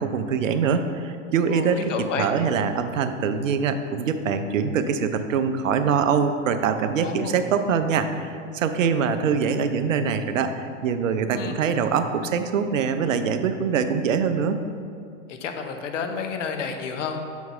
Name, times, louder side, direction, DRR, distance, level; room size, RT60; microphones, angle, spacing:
voice 1, 0.0-14.6, right 6 dB, 75° right, 9 dB, 0.7 m, -24 dB
voice 2, 1.5-2.3 7.0-7.4 11.3-11.7 15.3-17.2, left 6 dB, 70° left, 5 dB, 0.9 m, -30 dB
6.9 x 4.6 x 5.4 m, 2.3 s
hypercardioid pair, 100°, 39 cm